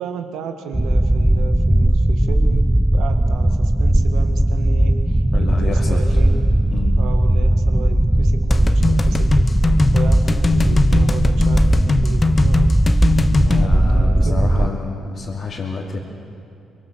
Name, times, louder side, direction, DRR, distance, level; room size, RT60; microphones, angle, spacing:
voice 1, 0.0-5.2 5.6-6.5 7.0-8.7 9.0-9.2 9.9-12.6 13.4-14.8, right 5 dB, 85° right, 6 dB, 1.9 m, -32 dB
sound 1, 0.7-14.7, right 1 dB, 5° right, 0.6 m, -17 dB
voice 2, 5.3-6.2 6.7-7.0 13.4-16.0, left 4 dB, 60° left, -4 dB, 2.8 m, -28 dB
sound 2, 8.5-13.7, left 3 dB, 30° left, 1.1 m, -20 dB
24.5 x 22.5 x 7.6 m, 2.4 s
cardioid pair, 90°, 0 cm